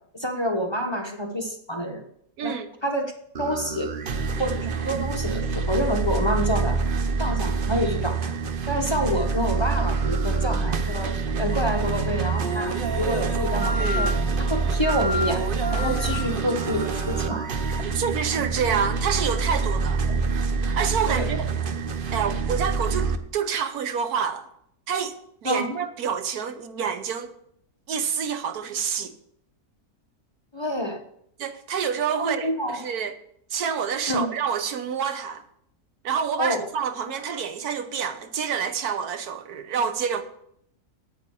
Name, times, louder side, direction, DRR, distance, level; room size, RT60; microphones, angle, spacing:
voice 1, 0.2-2.0 2.4-3.1 3.4-3.9 4.4-6.8 7.2-8.3 8.7-14.1 14.4-15.4 15.7-17.5 20.0-20.2 21.1-21.3 25.4-25.8 30.5-31.0 32.2-32.9 34.1-34.3 36.4-36.7, equal, 20° left, 1.0 m, -28 dB
voice 2, 2.4-2.7 17.9-20.0 20.6-21.5 22.1-24.5 24.9-25.2 25.4-27.3 27.9-29.1 31.4-33.1 33.5-35.4 36.0-40.2, right 7 dB, 85° right, 1.4 m, -27 dB
sound 1, 3.3-23.2, right 4 dB, 45° right, 0.8 m, -26 dB
Wind instrument woodwind instrument, 11.5-17.9, left 1 dB, 15° right, 0.9 m, -35 dB
8.7 x 8.5 x 6.9 m
omnidirectional pair, 1.6 m